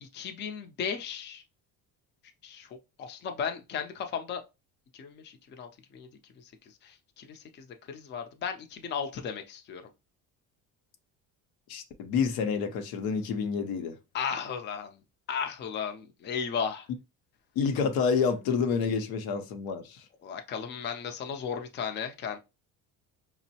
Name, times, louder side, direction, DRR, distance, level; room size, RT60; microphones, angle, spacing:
voice 1, 0.0-1.4 2.4-4.4 4.9-6.1 6.4-6.5 6.8-9.8 14.1-15.0 15.3-16.9 20.2-22.4, left 7 dB, 30° left, 0.4 m, -35 dB
voice 2, 11.7-14.0 17.6-20.1, left 5 dB, 90° left, 0.7 m, -28 dB
5.1 x 2.0 x 2.7 m
cardioid pair, 145°, 36 cm